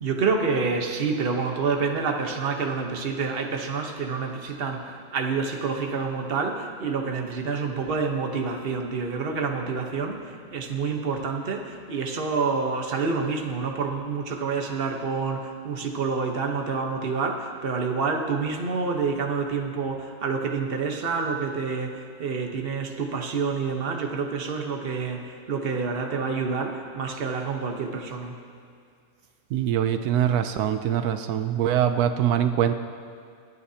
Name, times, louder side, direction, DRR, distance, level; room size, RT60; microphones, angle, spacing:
voice 1, 0.0-28.4, right 4 dB, 40° right, 2 dB, 1.2 m, -28 dB
voice 2, 29.5-32.7, right 10 dB, 85° right, 9 dB, 1.1 m, -23 dB
28.0 x 9.6 x 2.8 m, 2.2 s
omnidirectional pair, 1.6 m